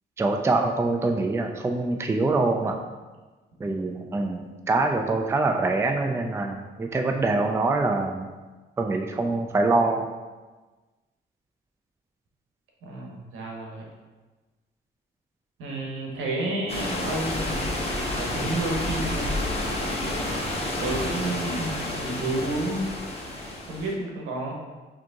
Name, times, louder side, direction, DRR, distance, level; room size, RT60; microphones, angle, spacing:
voice 1, 0.2-2.7 3.6-8.3 8.8-10.0, right 3 dB, 15° right, 3 dB, 0.4 m, -24 dB
voice 2, 12.8-13.8 15.6-17.7 18.1-19.4 20.0-22.9 23.7-24.5, right 2 dB, 80° right, -1 dB, 1.1 m, -31 dB
sound 1, 16.7-23.9, left 1 dB, 30° left, 1.0 m, -30 dB
4.9 x 2.9 x 3.5 m, 1.3 s
cardioid pair, 90°, 20 cm